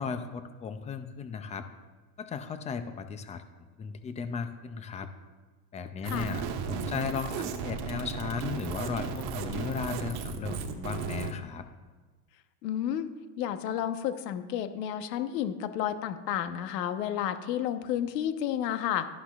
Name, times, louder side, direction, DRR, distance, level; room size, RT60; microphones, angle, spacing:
voice 1, 0.0-1.7 2.2-3.4 3.8-5.1 5.7-11.7, left 6 dB, 15° left, 9 dB, 0.3 m, -36 dB
sound 1, 6.0-11.3, right 6 dB, 50° right, 1.3 m, -35 dB
voice 2, 12.6-13.1 13.4-19.1, left 10 dB, 80° left, 9 dB, 1.1 m, -31 dB
12.0 x 11.5 x 2.4 m, 1.4 s
supercardioid pair, 125°, 48 cm